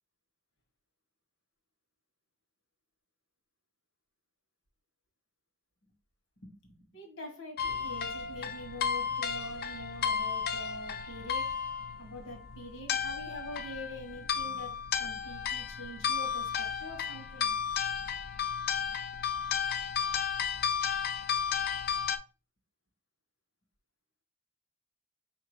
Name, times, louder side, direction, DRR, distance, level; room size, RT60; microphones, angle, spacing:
voice 1, 6.4-11.6 12.0-17.6, left 1 dB, 70° left, 1.4 m, -45 dB
sound 1, 7.6-22.2, left 7 dB, 45° left, 0.3 m, -33 dB
4.6 x 2.9 x 3.2 m
head